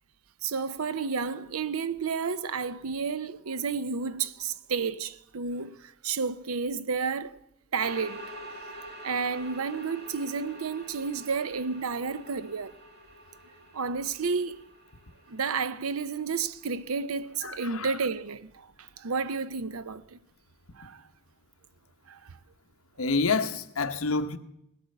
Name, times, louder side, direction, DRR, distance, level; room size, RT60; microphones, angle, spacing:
voice 1, 0.4-7.4 7.7-8.3 9.0-12.7 13.7-14.6 15.3-18.7 19.0-20.2 20.8-21.0 22.1-22.2, right 5 dB, 85° right, 0.7 m, -31 dB
sound 1, 7.8-17.3, right 1 dB, 50° right, 2.3 m, -47 dB
voice 2, 17.4-17.9 23.0-24.4, left 4 dB, 80° left, 1.0 m, -28 dB
19.0 x 8.5 x 7.7 m
head